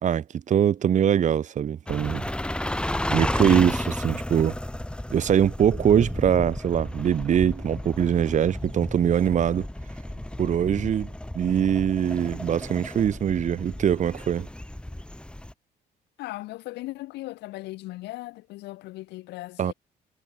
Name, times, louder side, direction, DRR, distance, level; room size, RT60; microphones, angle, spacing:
voice 1, 0.0-2.3 3.1-4.5 5.1-9.7 10.4-11.1 11.4-14.5 19.6-19.7, right 9 dB, 45° right, 1.9 m, -23 dB
sound 1, 1.9-15.5, left 1 dB, 5° left, 5.6 m, -33 dB
voice 2, 16.2-19.7, left 18 dB, 85° left, 7.1 m, -38 dB
cardioid pair, 110°, 17 cm